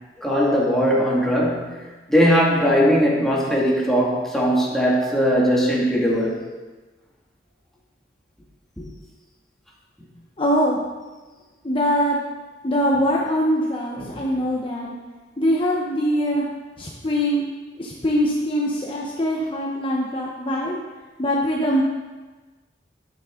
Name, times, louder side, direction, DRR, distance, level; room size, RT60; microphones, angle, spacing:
voice 1, 0.2-1.8 2.1-6.4 14.0-14.2, equal, ahead, -5 dB, 2.2 m, -19 dB
voice 2, 10.4-10.8 11.6-12.2 12.6-14.9 15.4-16.4 16.8-17.4 17.8-20.8 21.2-21.8, equal, 30° left, -3 dB, 1.0 m, -22 dB
11.5 x 9.3 x 3.8 m, 1.3 s
head